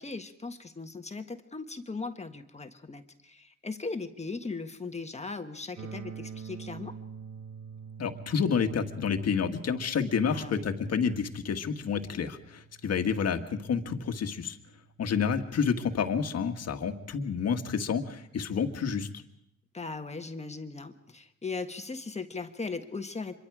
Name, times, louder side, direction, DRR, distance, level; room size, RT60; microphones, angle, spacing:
voice 1, 0.0-7.0 10.3-10.7 19.7-23.3, left 4 dB, 20° left, 6 dB, 1.6 m, -38 dB
sound 1, 5.8-15.7, right 6 dB, 50° right, 1.6 m, -47 dB
voice 2, 8.0-14.6 15.0-19.1, left 6 dB, 55° left, 6 dB, 1.8 m, -29 dB
25.5 x 23.0 x 4.9 m, 0.77 s
cardioid pair, 90°, 30 cm